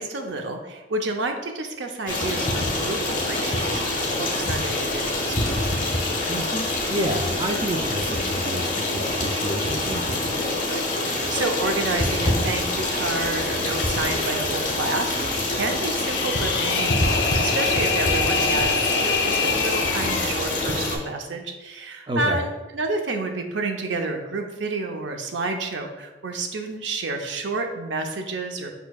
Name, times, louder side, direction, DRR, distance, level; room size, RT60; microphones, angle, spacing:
voice 1, 0.0-5.6 10.7-28.7, right 3 dB, 80° right, 4 dB, 0.6 m, -30 dB
Stream, 2.1-21.0, left 2 dB, 45° left, 1.0 m, -25 dB
voice 2, 6.3-10.2 22.1-22.5, right 1 dB, 25° right, 3 dB, 0.3 m, -29 dB
sound 1, 15.9-20.3, left 5 dB, 70° left, 0.4 m, -25 dB
5.1 x 4.5 x 2.3 m, 1.2 s
head